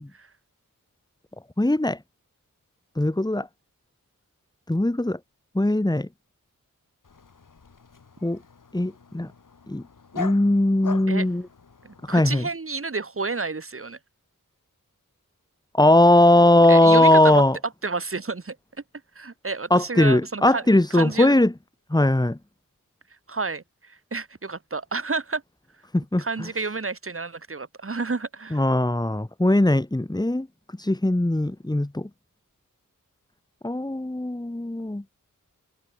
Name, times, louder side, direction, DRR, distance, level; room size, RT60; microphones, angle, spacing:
voice 1, 1.6-2.0 3.0-3.5 4.7-5.2 5.5-6.1 8.2-8.4 8.7-9.3 9.7-9.8 10.1-11.4 12.1-12.5 15.7-17.6 19.7-21.5 21.9-22.4 25.9-26.2 28.5-30.5 30.8-32.1 33.6-35.0, left 1 dB, 10° left, 1.3 m, -19 dB
Dog, 7.0-12.4, left 5 dB, 65° left, 2.1 m, -41 dB
voice 2, 11.8-14.0 16.7-17.4 17.8-18.6 19.2-20.6 20.9-21.3 23.3-25.4 26.2-28.6, right 4 dB, 40° right, 1.8 m, -30 dB
wide cardioid pair, 70°, 34 cm